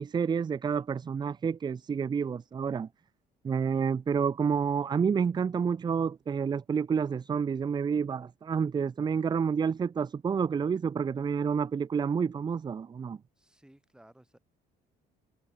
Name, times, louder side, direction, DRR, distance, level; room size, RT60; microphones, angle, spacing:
voice 1, 0.0-2.9 3.4-13.2, right 6 dB, 25° right, 0.5 m, -29 dB
voice 2, 13.4-14.4, right 1 dB, 5° right, 7.5 m, -58 dB
cardioid pair, 110°, 17 cm